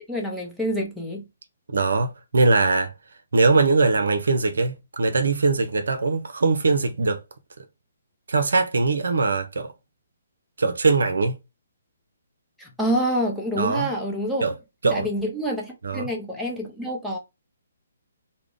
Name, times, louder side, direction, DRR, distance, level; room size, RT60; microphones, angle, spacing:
voice 1, 0.1-1.3 12.6-14.4 14.9-17.2, equal, ahead, 0.8 m, -27 dB
voice 2, 1.7-2.9 3.3-7.2 8.3-9.7 10.6-11.4 13.6-13.9 14.4-14.5 14.8-15.1 15.8-16.1, right 3 dB, 65° right, 0.5 m, -21 dB
3.5 x 2.1 x 3.5 m
figure-of-eight pair, 130°, 0 cm